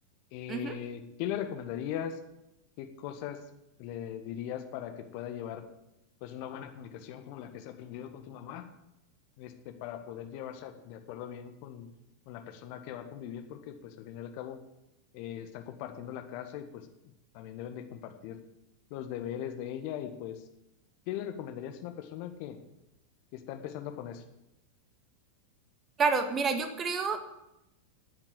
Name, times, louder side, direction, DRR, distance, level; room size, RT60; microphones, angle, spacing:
voice 1, 0.3-2.2 2.8-3.4 3.8-5.6 6.2-8.6 9.4-11.9 12.3-14.6 15.1-16.7 17.3-18.4 18.9-20.4 21.1-22.6 23.3-24.2, left 10 dB, 45° left, 7 dB, 1.5 m, -39 dB
voice 2, 26.0-27.2, right 4 dB, 25° right, 7 dB, 1.8 m, -28 dB
9.7 x 9.4 x 9.2 m, 0.89 s
figure-of-eight pair, 90°, 0 cm